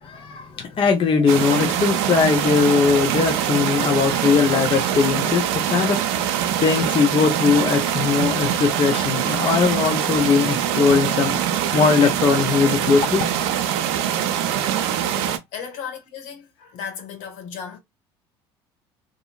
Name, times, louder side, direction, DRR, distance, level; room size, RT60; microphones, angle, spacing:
voice 1, 0.0-13.3, left 5 dB, 40° left, 0.7 m, -20 dB
sound 1, 1.3-15.4, right 10 dB, 75° right, 0.5 m, -23 dB
voice 2, 14.7-17.8, left 7 dB, 70° left, 1.1 m, -36 dB
2.8 x 2.7 x 2.3 m
hypercardioid pair, 70°, 14 cm